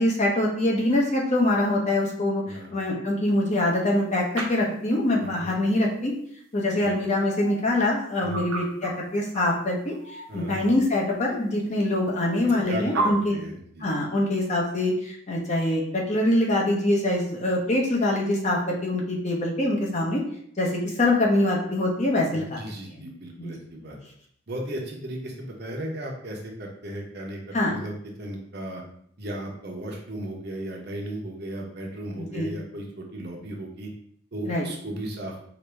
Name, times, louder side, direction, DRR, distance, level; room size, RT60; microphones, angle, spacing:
voice 1, 0.0-2.4 2.7-6.1 6.5-9.9 10.3-13.3 13.8-20.2 20.6-22.6 23.4-23.5 27.5-27.7 32.2-32.5 34.5-34.6, left 1 dB, 35° left, -2 dB, 0.9 m, -24 dB
sound 1, 4.4-4.5 6.6-6.7 7.2-7.8 8.3-8.9 9.3-9.4 9.9-10.6 11.3-11.4 11.6-11.7 12.9-13.1, right 2 dB, 90° right, 0.9 m, -31 dB
voice 2, 5.2-5.5 6.8-6.9 8.2-8.4 10.3-10.7 12.5-13.9 22.3-24.0 24.5-28.8 29.2-33.9 34.3-35.4, right 1 dB, 55° right, -1 dB, 0.9 m, -36 dB
5.0 x 2.7 x 3.4 m, 0.65 s
head